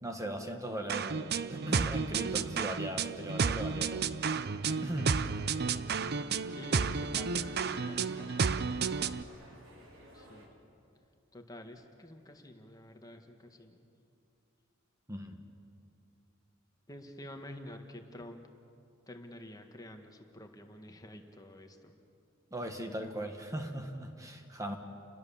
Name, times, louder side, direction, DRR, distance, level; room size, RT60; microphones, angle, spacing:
voice 1, 0.0-4.1 4.7-5.2 15.1-15.4 22.5-24.8, right 1 dB, 15° right, 4 dB, 1.5 m, -39 dB
sound 1, 0.9-9.2, right 5 dB, 55° right, 0.7 m, -32 dB
sound 2, 4.6-10.5, equal, 80° right, 4.0 m, -55 dB
voice 2, 6.6-8.5 10.1-10.5 11.3-13.8 16.9-18.5 19.1-21.9, left 1 dB, 20° left, 4 dB, 1.7 m, -49 dB
29.5 x 21.5 x 7.3 m, 2.6 s
head